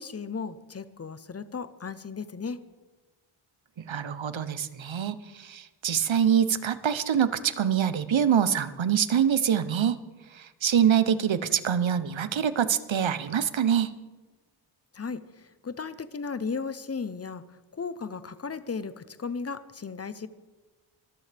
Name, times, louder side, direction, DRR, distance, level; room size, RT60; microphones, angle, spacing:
voice 1, 0.0-2.6 14.9-17.4 17.7-20.3, left 5 dB, 30° left, 13 dB, 0.7 m, -35 dB
voice 2, 3.8-10.0 10.3-13.9, right 8 dB, 65° right, 13 dB, 0.9 m, -25 dB
24.0 x 14.0 x 3.5 m, 1.3 s
wide cardioid pair, 115°, 50 cm